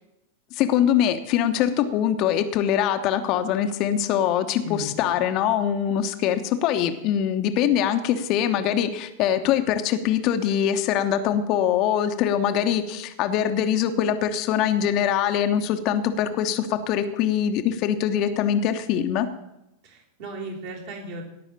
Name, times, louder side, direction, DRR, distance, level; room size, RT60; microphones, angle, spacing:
voice 1, 0.5-19.3, left 9 dB, 40° left, 7 dB, 1.2 m, -23 dB
voice 2, 19.8-21.2, right 1 dB, 50° right, 2 dB, 4.2 m, -36 dB
17.5 x 6.2 x 8.8 m, 0.89 s
figure-of-eight pair, 90°, 0 cm